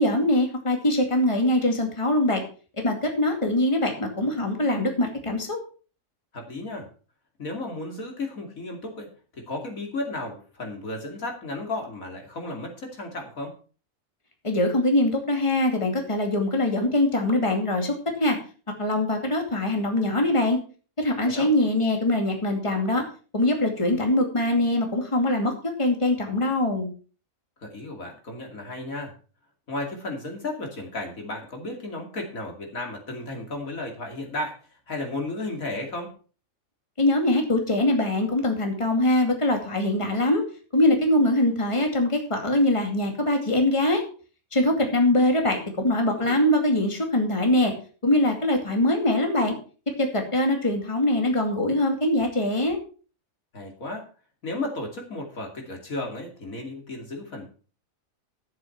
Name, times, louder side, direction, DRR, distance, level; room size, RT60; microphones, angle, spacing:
voice 1, 0.0-2.4 2.8-5.6 14.4-18.4 18.8-20.6 21.0-23.0 23.3-25.5 25.8-26.9 37.0-40.4 40.7-44.0 44.5-47.7 48.0-49.5 50.0-52.8, left 1 dB, 20° left, 3 dB, 2.5 m, -23 dB
voice 2, 6.3-6.9 7.4-13.5 21.2-21.5 27.6-29.1 29.7-34.6 34.9-36.1 46.2-46.4 53.5-54.1 54.4-57.5, left 2 dB, 75° left, 2 dB, 3.1 m, -34 dB
12.0 x 7.5 x 5.8 m, 0.38 s
omnidirectional pair, 1.5 m